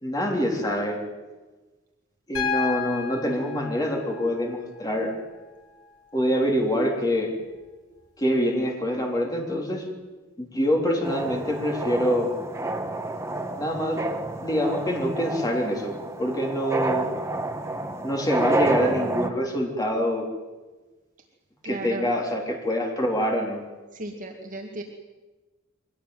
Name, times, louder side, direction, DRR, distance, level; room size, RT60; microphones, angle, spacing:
voice 1, 0.0-1.0 2.3-5.1 6.1-7.3 8.2-9.8 10.4-12.3 13.6-14.0 14.4-17.1 18.0-20.3 21.6-23.6, equal, 20° left, 1 dB, 3.5 m, -25 dB
Piano, 2.3-6.3 7.9-8.0, left 7 dB, 75° left, 4.9 m, -33 dB
sound 1, 11.0-19.3, right 2 dB, 15° right, 1.5 m, -30 dB
voice 2, 21.6-22.1 23.9-24.8, right 2 dB, 40° right, 1 dB, 2.2 m, -35 dB
23.5 x 18.5 x 9.4 m, 1.2 s
head